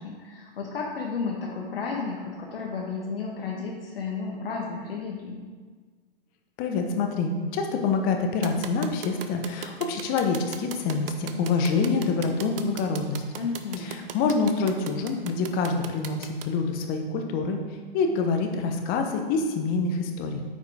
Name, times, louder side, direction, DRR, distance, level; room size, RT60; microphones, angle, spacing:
voice 1, 0.0-5.4 13.4-13.9, left 4 dB, 75° left, -1 dB, 1.3 m, -32 dB
voice 2, 6.6-13.2 14.1-17.6 17.9-20.4, left 4 dB, 30° left, 4 dB, 0.9 m, -26 dB
sound 1, 8.4-16.5, right 8 dB, 70° right, 0.7 m, -37 dB
9.4 x 4.9 x 3.4 m, 1.5 s
hypercardioid pair, 120°, 29 cm